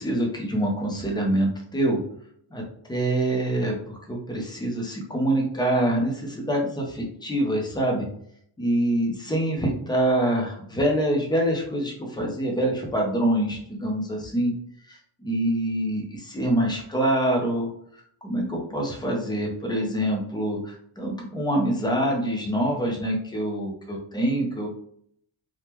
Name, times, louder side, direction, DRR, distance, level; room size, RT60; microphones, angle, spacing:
voice 1, 0.0-2.0 2.5-2.6 2.9-8.1 8.6-14.5 14.9-17.7 18.2-24.7, right 1 dB, 10° left, -1 dB, 0.4 m, -25 dB
3.4 x 2.1 x 2.9 m, 0.66 s
wide cardioid pair, 175°, 50 cm